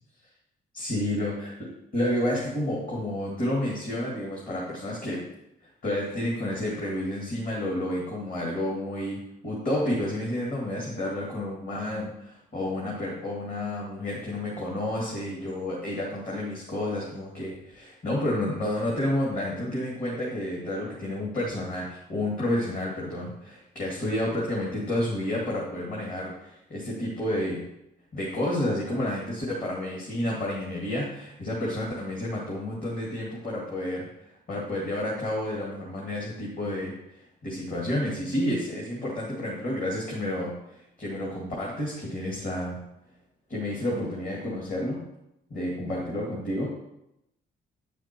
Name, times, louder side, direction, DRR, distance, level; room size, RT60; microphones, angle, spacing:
voice 1, 0.7-5.3 5.8-27.6 28.1-34.1 34.5-42.8 43.5-45.0 45.5-46.7, left 1 dB, 45° left, -4 dB, 2.3 m, -30 dB
9.0 x 5.0 x 4.5 m, 0.86 s
cardioid pair, 90°, 20 cm